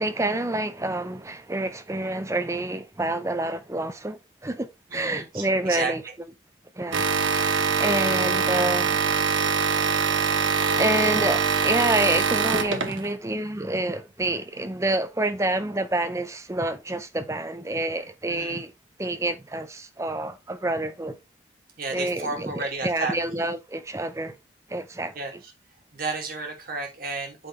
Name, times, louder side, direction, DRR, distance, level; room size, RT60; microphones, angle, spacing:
voice 1, 0.0-6.0 6.8-7.0 7.3-8.9 10.8-18.7 19.0-21.2 21.9-24.3 24.7-25.2, right 2 dB, 15° right, 0.5 m, -28 dB
voice 2, 4.9-5.9 18.3-18.6 21.8-23.4 25.1-25.5 25.9-27.5, right 3 dB, 50° right, 2.0 m, -32 dB
sound 1, 6.9-13.1, right 5 dB, 80° right, 0.9 m, -23 dB
8.9 x 4.0 x 3.2 m
head